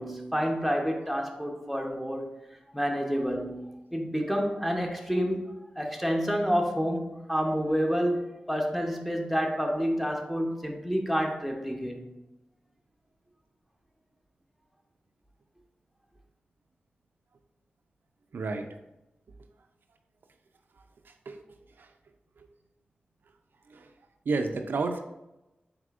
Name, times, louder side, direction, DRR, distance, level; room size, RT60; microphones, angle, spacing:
voice 1, 0.0-2.3 2.7-12.1, equal, ahead, 2 dB, 0.7 m, -29 dB
voice 2, 18.3-18.7 21.1-21.4 21.8-21.9 23.7-23.9 24.3-25.0, right 3 dB, 80° right, 5 dB, 0.3 m, -31 dB
4.8 x 3.4 x 2.4 m, 0.96 s
cardioid pair, 55°, 3 cm